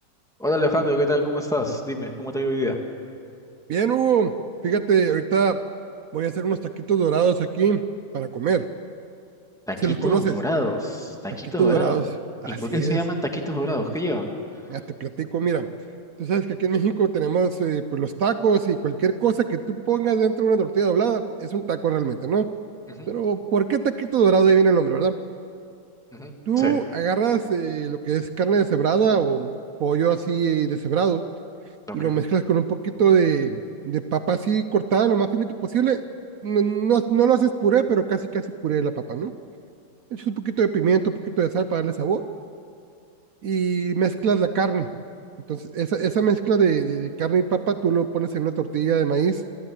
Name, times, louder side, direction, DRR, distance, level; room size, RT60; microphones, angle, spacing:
voice 1, 0.4-2.8 9.7-12.0 12.4-14.3 23.0-23.1 26.1-26.7 31.9-32.2, equal, ahead, 2 dB, 1.9 m, -26 dB
voice 2, 3.7-4.3 4.6-5.6 6.1-7.8 8.1-8.7 9.8-10.3 11.6-12.0 12.4-13.0 14.7-15.7 16.2-22.5 23.1-25.2 26.5-31.2 31.9-36.0 36.4-39.3 40.1-42.2 43.4-44.9 45.5-49.4, right 7 dB, 60° right, 10 dB, 0.9 m, -22 dB
28.0 x 13.5 x 8.8 m, 2.5 s
omnidirectional pair, 2.1 m